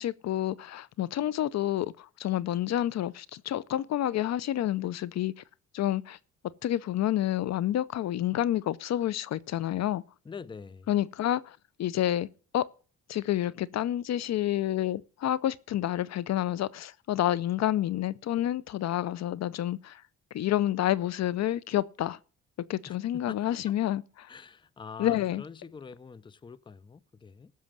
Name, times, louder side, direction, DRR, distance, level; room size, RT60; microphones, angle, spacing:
voice 1, 0.0-5.4 5.7-6.2 6.6-10.0 10.9-12.3 12.5-12.7 13.1-20.0 20.3-22.2 22.7-24.3 25.0-25.4, left 12 dB, 60° left, 0.6 m, -29 dB
voice 2, 10.2-10.9 22.9-23.6 24.3-27.5, left 5 dB, 15° left, 0.5 m, -45 dB
15.0 x 6.3 x 7.2 m
cardioid pair, 90°, 30 cm